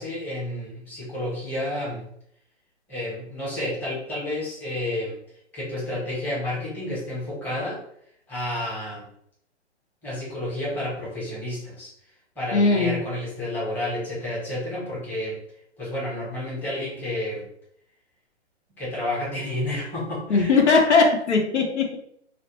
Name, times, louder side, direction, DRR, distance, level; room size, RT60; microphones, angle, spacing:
voice 1, 0.0-2.0 2.9-5.2 5.5-7.8 8.3-9.1 10.0-11.9 12.4-15.4 15.8-17.5 18.8-20.5, left 1 dB, 5° left, -8 dB, 0.9 m, -30 dB
voice 2, 12.5-13.0 20.3-22.0, left 4 dB, 80° left, 2 dB, 0.8 m, -19 dB
2.4 x 2.1 x 2.9 m, 0.69 s
hypercardioid pair, 140°, 34 cm